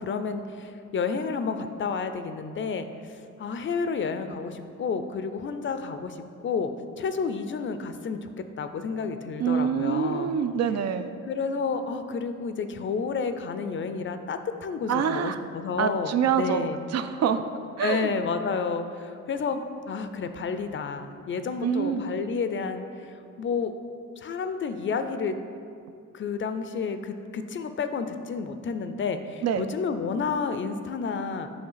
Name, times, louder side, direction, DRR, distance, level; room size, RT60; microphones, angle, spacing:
voice 1, 0.0-8.3 8.6-10.3 11.3-16.8 17.8-23.7 24.2-25.4 26.1-31.5, left 5 dB, 40° left, 9 dB, 0.5 m, -30 dB
voice 2, 9.4-11.1 14.9-15.4 15.8-16.6 16.9-17.4 17.8-18.1 21.6-22.0 29.4-29.6, right 7 dB, 60° right, 10 dB, 0.4 m, -25 dB
7.9 x 3.2 x 5.6 m, 2.4 s
cardioid pair, 90°, 30 cm